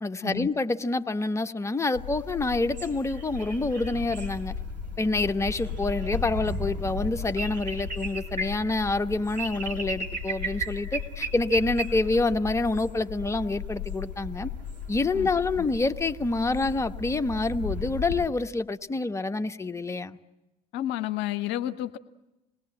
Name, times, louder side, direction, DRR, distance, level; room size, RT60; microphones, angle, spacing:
voice 1, 0.0-4.5 5.0-14.5 14.9-20.2, left 3 dB, 15° left, 8 dB, 1.2 m, -27 dB
sound 1, 1.9-18.3, left 2 dB, 90° right, 2.7 m, -35 dB
voice 2, 20.7-22.0, left 13 dB, 55° left, 11 dB, 0.9 m, -30 dB
27.5 x 20.5 x 8.9 m, 0.99 s
figure-of-eight pair, 60°, 21 cm